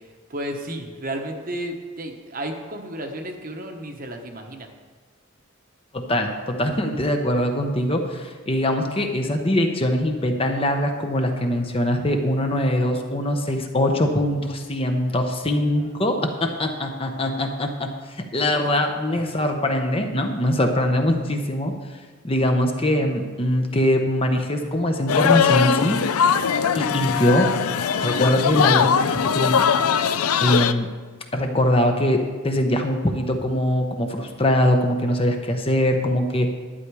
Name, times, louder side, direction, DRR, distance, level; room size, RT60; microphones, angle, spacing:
voice 1, 0.3-4.7 18.6-19.2, right 1 dB, 40° right, 4 dB, 1.1 m, -33 dB
voice 2, 5.9-21.7 22.2-26.0 26.8-27.5 28.0-29.6 30.4-30.9 31.3-36.5, left 1 dB, 25° left, 4 dB, 0.8 m, -22 dB
sound 1, 25.1-30.7, left 7 dB, 85° left, 0.5 m, -20 dB
11.5 x 9.6 x 4.8 m, 1.5 s
head